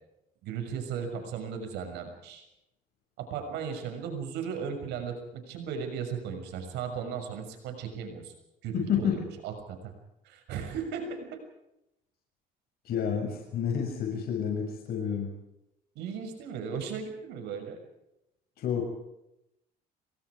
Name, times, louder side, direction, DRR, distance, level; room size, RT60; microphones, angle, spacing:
voice 1, 0.4-2.4 3.2-8.3 8.6-9.9 10.2-11.4 15.9-17.8, right 6 dB, 90° right, 6 dB, 6.5 m, -36 dB
voice 2, 8.7-9.2 12.8-15.3 18.6-18.9, left 7 dB, 65° left, 1 dB, 6.6 m, -29 dB
28.0 x 25.0 x 5.0 m, 0.86 s
cardioid pair, 110°, 17 cm